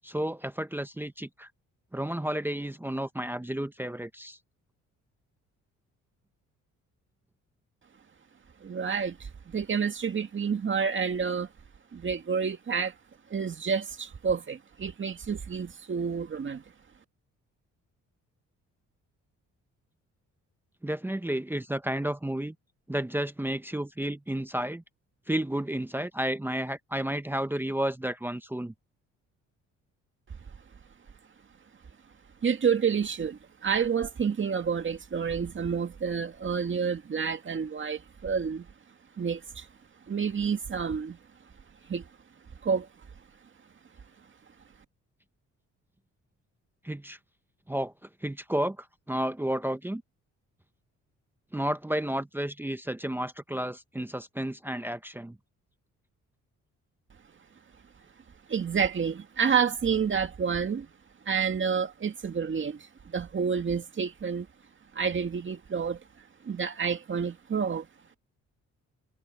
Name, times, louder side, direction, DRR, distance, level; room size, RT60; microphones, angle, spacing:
voice 1, 0.0-1.5 1.9-4.4 20.8-22.5 22.9-24.8 25.3-28.7 46.8-47.2 47.7-50.0 51.5-55.4, right 1 dB, 5° right, 0.9 m, -32 dB
voice 2, 8.6-11.5 11.9-12.9 13.3-16.6 32.4-38.7 39.2-39.7 40.1-41.2 41.9-42.1 42.6-42.9 58.5-60.9 61.3-64.5 64.9-66.0 66.4-67.9, right 6 dB, 40° right, 2.2 m, -29 dB
cardioid pair, 90°, 30 cm